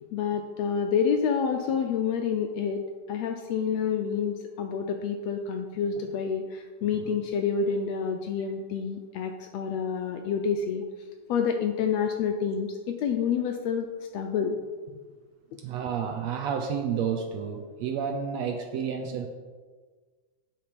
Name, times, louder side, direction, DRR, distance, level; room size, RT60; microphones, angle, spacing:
voice 1, 0.1-2.8 3.1-10.8 11.3-13.9 14.1-14.6, left 6 dB, 80° left, 5 dB, 1.6 m, -28 dB
voice 2, 15.6-19.3, right 7 dB, 75° right, 4 dB, 1.7 m, -31 dB
9.7 x 6.1 x 5.1 m, 1.4 s
omnidirectional pair, 3.5 m